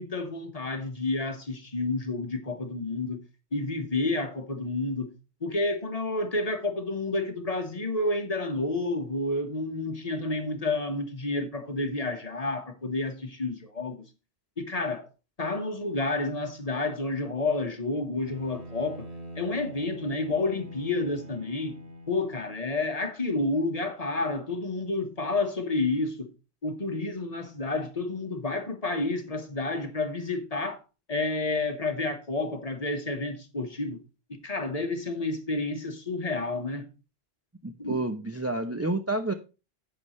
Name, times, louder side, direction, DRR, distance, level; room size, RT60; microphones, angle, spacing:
voice 1, 0.0-3.2 3.5-5.1 5.4-14.0 14.6-15.1 15.4-19.1 19.3-21.7 22.1-26.3 26.6-30.8 31.1-34.0 34.4-36.9 37.8-37.9, left 2 dB, 35° left, 1.4 m, -30 dB
Bowed string instrument, 18.2-22.7, equal, 85° right, 2.2 m, -44 dB
voice 2, 37.6-39.3, right 2 dB, 20° right, 0.5 m, -29 dB
10.5 x 8.0 x 3.1 m
omnidirectional pair, 1.1 m